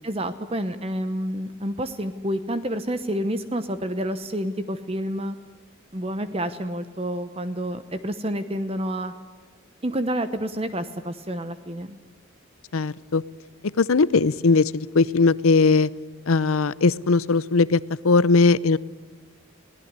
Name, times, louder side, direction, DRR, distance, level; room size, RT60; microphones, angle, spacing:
voice 1, 0.0-5.4 5.9-9.1 9.8-12.0, equal, 25° right, 10 dB, 0.9 m, -29 dB
voice 2, 12.7-13.2 13.6-15.9 16.3-18.8, left 4 dB, 80° left, 19 dB, 0.7 m, -19 dB
22.5 x 17.0 x 9.7 m, 1.4 s
head